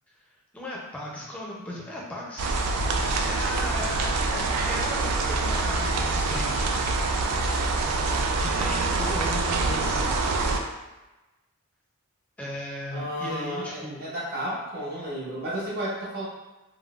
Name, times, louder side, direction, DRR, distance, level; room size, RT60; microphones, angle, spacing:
voice 1, 0.5-2.5 2.9-6.9 8.4-10.1 12.4-14.1, left 1 dB, 5° left, -4 dB, 0.4 m, -36 dB
sound 1, 2.4-10.6, right 3 dB, 90° right, 0.3 m, -25 dB
voice 2, 12.9-16.3, equal, 45° right, -6 dB, 0.6 m, -32 dB
3.5 x 2.0 x 2.3 m, 1.1 s
head